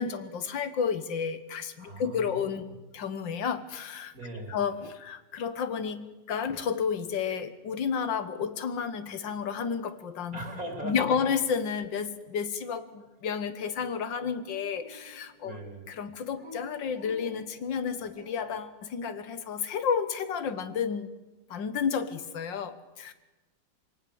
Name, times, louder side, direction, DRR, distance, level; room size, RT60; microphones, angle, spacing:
voice 1, 0.0-4.1 4.5-10.4 10.8-15.6 15.9-21.1 21.5-23.1, left 6 dB, 90° left, 11 dB, 1.9 m, -31 dB
voice 2, 1.8-2.6 4.1-4.6 10.3-11.0 15.4-15.9, right 1 dB, 50° right, 3 dB, 4.3 m, -39 dB
Dog, 14.0-15.5 16.3-18.7, left 2 dB, 25° right, 2.8 m, -50 dB
24.0 x 18.0 x 7.1 m, 1.1 s
omnidirectional pair, 1.9 m